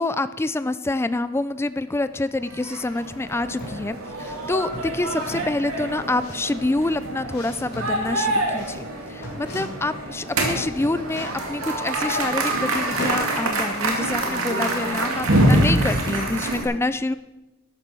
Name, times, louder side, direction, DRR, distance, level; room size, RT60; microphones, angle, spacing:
voice 1, 0.0-17.1, left 2 dB, 10° left, 13 dB, 0.3 m, -27 dB
sound 1, 2.5-16.6, right 1 dB, 70° right, 2.4 m, -25 dB
sound 2, 3.1-3.8 4.2-10.0 10.2-13.4, left 1 dB, 50° left, 3.7 m, -39 dB
13.0 x 11.0 x 4.6 m, 1.0 s
head